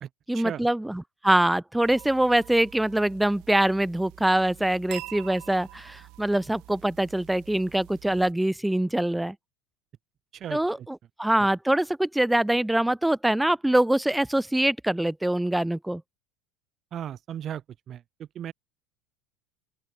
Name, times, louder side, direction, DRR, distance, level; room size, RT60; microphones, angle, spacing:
voice 1, 0.3-9.3 10.5-16.0, right 1 dB, 5° right, 2.7 m, -24 dB
sound 1, 1.8-8.3, right 22 dB, 60° right, 6.2 m, -46 dB
voice 2, 10.3-10.9 16.9-18.5, right 10 dB, 40° right, 1.7 m, -36 dB
open air
hypercardioid pair, 85°, 0 cm